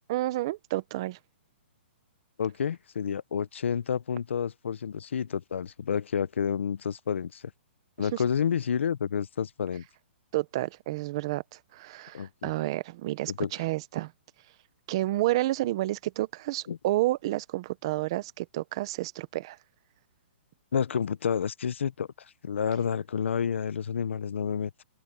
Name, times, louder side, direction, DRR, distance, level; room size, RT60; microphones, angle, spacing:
voice 1, 0.1-1.2 8.0-8.2 10.3-11.4 11.7-14.1 14.9-19.6, right 16 dB, 25° right, 0.6 m, -30 dB
voice 2, 2.4-7.4 8.0-9.8 12.1-12.5 13.3-13.5 16.7-16.8 20.7-22.1 22.4-24.7, left 7 dB, 75° left, 0.7 m, -29 dB
open air
hypercardioid pair, 180°, 7 cm